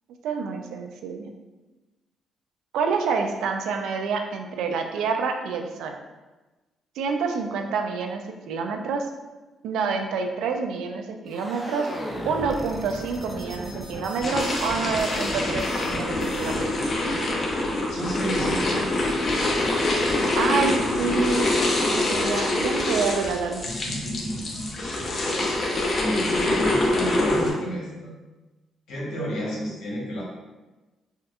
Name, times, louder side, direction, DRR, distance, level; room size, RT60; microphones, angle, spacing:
voice 1, 0.2-1.3 2.7-5.9 7.0-9.0 9.6-11.9 12.2-16.9 20.3-23.7, right 5 dB, 85° right, 4 dB, 0.3 m, -28 dB
sound 1, 11.3-16.8, equal, ahead, 0.6 m, -36 dB
sound 2, 14.2-27.5, left 2 dB, 45° left, 0.7 m, -25 dB
voice 2, 17.9-18.9 23.6-25.1 26.0-28.1 28.9-30.2, equal, 85° left, -5 dB, 1.1 m, -31 dB
4.2 x 2.3 x 2.4 m, 1.2 s
cardioid pair, 90°, 0 cm